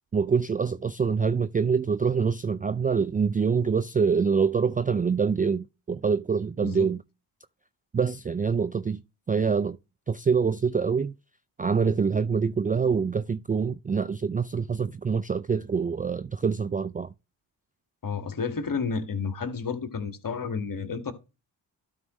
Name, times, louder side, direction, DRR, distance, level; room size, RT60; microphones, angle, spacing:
voice 1, 0.1-7.0 7.9-9.0 9.3-9.8 10.1-11.1 11.6-17.1, right 5 dB, 20° right, 0.4 m, -25 dB
voice 2, 18.0-21.1, left 5 dB, 40° left, 2.0 m, -31 dB
12.5 x 4.9 x 3.1 m
hypercardioid pair, 45°, 49 cm